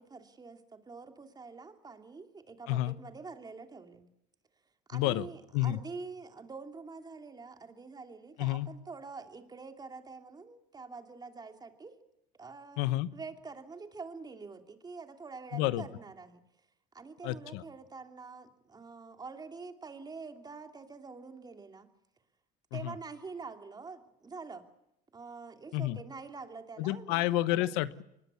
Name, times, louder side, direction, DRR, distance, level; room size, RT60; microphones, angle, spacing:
voice 1, 0.0-4.1 4.9-12.0 12.3-12.8 13.1-16.4 16.9-21.9 22.7-24.6 25.1-27.7, right 4 dB, 20° right, 6 dB, 2.8 m, -46 dB
voice 2, 2.7-3.0 4.9-5.3 5.5-5.8 8.4-8.7 12.8-13.1 15.5-15.9 17.2-17.6 22.7-22.9 25.7-26.0 26.8-28.0, left 16 dB, 80° left, 16 dB, 1.1 m, -30 dB
24.0 x 21.0 x 8.3 m, 0.81 s
cardioid pair, 120°, 20 cm